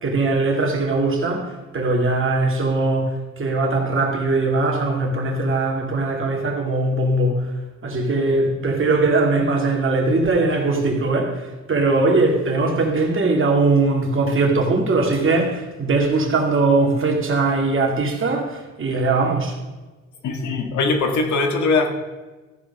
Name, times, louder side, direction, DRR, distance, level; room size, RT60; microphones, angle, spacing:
voice 1, 0.0-7.4 7.8-11.3 11.7-19.5, right 3 dB, 45° right, 2.3 m, -20 dB
voice 2, 20.2-21.9, left 3 dB, 70° left, 1.7 m, -21 dB
14.5 x 5.0 x 5.3 m
cardioid pair, 90°, 30 cm